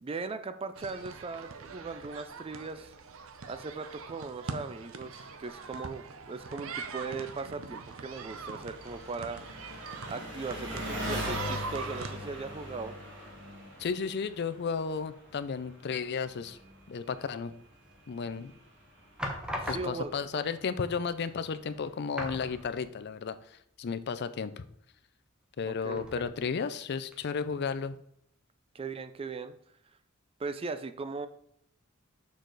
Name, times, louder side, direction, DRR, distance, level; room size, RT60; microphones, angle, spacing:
voice 1, 0.0-2.9 3.5-9.6 10.1-12.9 19.6-20.4 25.7-26.3 28.7-29.5 30.4-31.3, right 4 dB, 25° right, 11 dB, 0.4 m, -39 dB
sound 1, 0.7-12.2, right 5 dB, 80° right, 0.7 m, -43 dB
Engine, 4.7-22.8, equal, 60° right, 1.7 m, -43 dB
voice 2, 13.8-16.6 16.9-17.5 18.1-18.5 19.7-24.7 25.6-28.0, left 5 dB, 55° left, 13 dB, 0.4 m, -33 dB
sound 2, 17.9-18.4 19.2-20.3 21.2-21.3 21.6-21.7 22.1-23.1 23.4-23.5 25.9-26.6 27.1-27.2, equal, 5° right, 0.9 m, -39 dB
6.5 x 4.8 x 3.9 m, 0.71 s
head